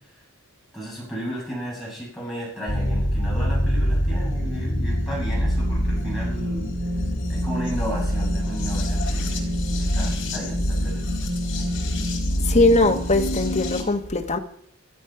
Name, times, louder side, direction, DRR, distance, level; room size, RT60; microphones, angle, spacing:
voice 1, 0.7-6.8 7.3-11.0, equal, ahead, 7.5 m, -34 dB
sound 1, 2.7-13.8, equal, 55° left, 3.8 m, -25 dB
voice 2, 12.4-14.4, left 2 dB, 30° left, 1.3 m, -20 dB
13.0 x 12.5 x 5.8 m
head